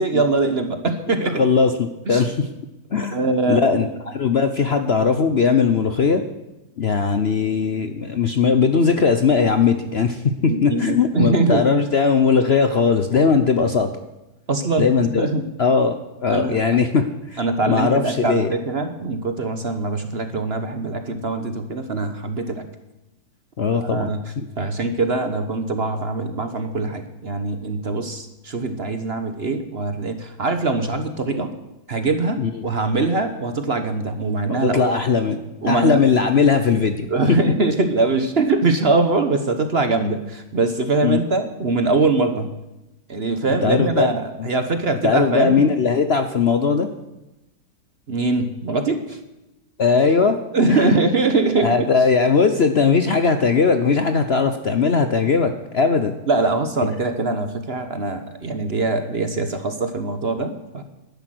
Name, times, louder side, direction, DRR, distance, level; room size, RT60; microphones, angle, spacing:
voice 1, 0.0-1.4 2.1-2.2 3.1-3.9 10.5-11.6 14.5-15.4 16.3-16.6 17.4-22.7 23.8-24.2 24.6-31.5 31.9-34.9 35.6-36.0 37.1-42.5 43.1-45.6 48.1-49.2 50.5-51.7 56.3-60.8, right 3 dB, 40° right, 8 dB, 1.2 m, -22 dB
voice 2, 1.4-2.5 2.9-6.2 6.8-13.9 14.8-15.3 15.6-17.1 17.3-18.5 23.6-24.1 24.4-24.5 32.4-32.6 34.5-35.4 35.6-37.4 41.0-41.2 43.6-44.1 44.4-44.5 45.0-46.9 49.8-50.4 50.7-51.0 51.6-56.2, left 5 dB, 50° left, 8 dB, 0.9 m, -19 dB
12.0 x 10.5 x 7.8 m, 0.97 s
omnidirectional pair, 1.8 m